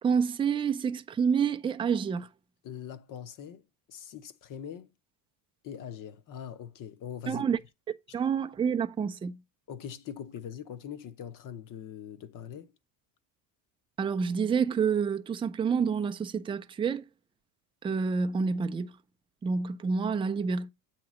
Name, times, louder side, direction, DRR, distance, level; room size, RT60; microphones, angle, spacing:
voice 1, 0.0-2.3 7.3-7.6 8.1-9.4 14.0-17.0 17.8-18.9 19.4-20.7, right 6 dB, 15° right, 0.3 m, -28 dB
voice 2, 2.6-3.6 3.9-4.9 5.6-7.4 9.7-12.7, left 9 dB, 45° left, 0.9 m, -42 dB
8.2 x 3.0 x 6.1 m
cardioid pair, 125°, 43 cm